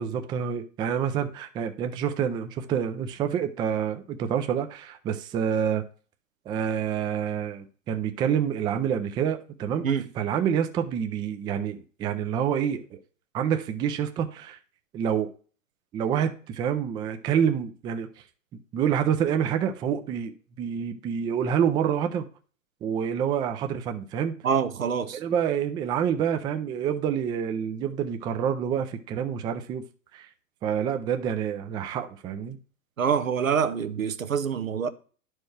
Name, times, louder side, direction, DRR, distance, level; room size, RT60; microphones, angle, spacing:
voice 1, 0.0-5.8 6.5-9.9 10.2-13.0 13.3-14.6 14.9-15.3 15.9-18.1 18.7-22.3 22.8-24.4 25.1-29.8 30.1-30.3 30.6-32.6, right 8 dB, 10° right, 0.3 m, -27 dB
voice 2, 24.4-25.2 33.0-34.9, right 7 dB, 90° right, 0.8 m, -26 dB
11.0 x 4.5 x 3.2 m
hypercardioid pair, 105°, 39 cm